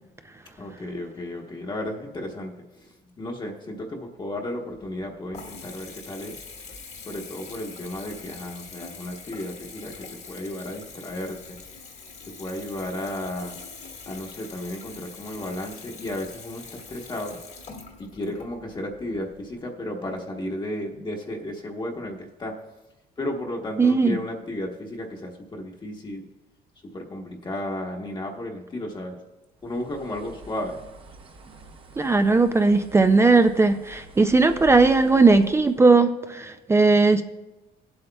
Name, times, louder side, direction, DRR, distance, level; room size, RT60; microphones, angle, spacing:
voice 1, 0.6-6.4 6.7-11.8 12.3-13.6 14.0-17.4 17.7-22.6 23.2-26.3 26.8-29.1 29.6-30.8, left 1 dB, 25° left, 1.1 m, -34 dB
Water tap faucet / Bathtub (filling or washing) / Trickle dribble, 4.7-19.6, left 4 dB, 40° left, 1.3 m, -44 dB
voice 2, 23.8-24.2 32.0-37.2, right 3 dB, 15° right, 0.4 m, -18 dB
Bird, 29.6-35.8, right 2 dB, 30° right, 0.9 m, -47 dB
18.0 x 7.9 x 2.3 m
cardioid pair, 110°, 17 cm